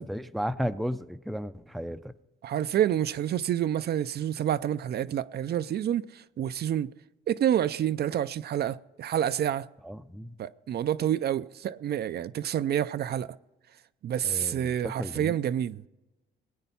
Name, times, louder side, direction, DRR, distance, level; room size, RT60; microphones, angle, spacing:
voice 1, 0.0-2.1 9.8-10.4 14.2-15.4, equal, ahead, 0.5 m, -34 dB
voice 2, 2.4-6.9 7.3-9.7 10.4-13.4 14.0-15.8, right 10 dB, 55° right, 0.4 m, -28 dB
20.0 x 9.0 x 5.6 m
cardioid pair, 90°, 20 cm